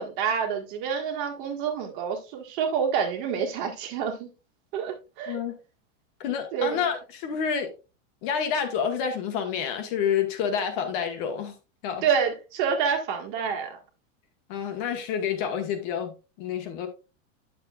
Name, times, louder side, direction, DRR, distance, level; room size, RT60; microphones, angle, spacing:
voice 1, 0.0-4.3 4.7-5.4 6.5-6.8 12.0-13.8, right 7 dB, 40° right, 1.7 m, -28 dB
voice 2, 5.3-5.6 6.2-7.7 8.2-11.5 11.8-12.0 14.5-16.1 16.4-16.9, left 7 dB, 40° left, 1.4 m, -28 dB
9.5 x 7.1 x 2.4 m
supercardioid pair, 170°, 38 cm